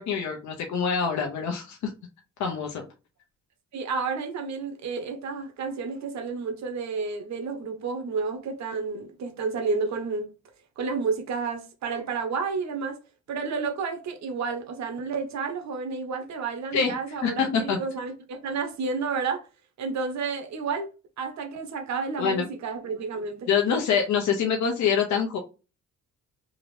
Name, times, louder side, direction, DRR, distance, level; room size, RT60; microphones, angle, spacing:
voice 1, 0.0-1.9 2.4-2.8 16.7-16.9 17.2-17.8 22.2-22.5 23.5-25.4, left 6 dB, 70° left, 0.8 m, -25 dB
voice 2, 3.7-10.3 10.8-13.0 13.3-19.5 19.8-20.9 21.2-23.5, right 4 dB, 65° right, 1.1 m, -31 dB
3.7 x 2.5 x 3.2 m
cardioid pair, 90°, 30 cm